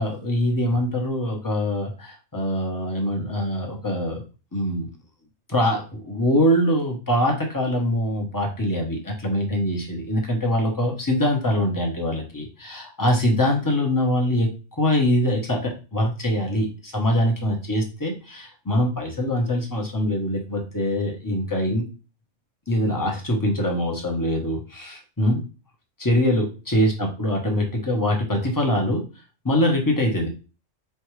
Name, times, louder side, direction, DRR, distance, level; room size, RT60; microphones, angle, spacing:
voice 1, 0.0-4.2 4.5-4.9 5.5-21.8 22.7-25.4 26.0-29.0 29.4-30.3, left 1 dB, 15° left, 1 dB, 1.0 m, -23 dB
4.4 x 3.3 x 3.1 m, 0.33 s
omnidirectional pair, 1.4 m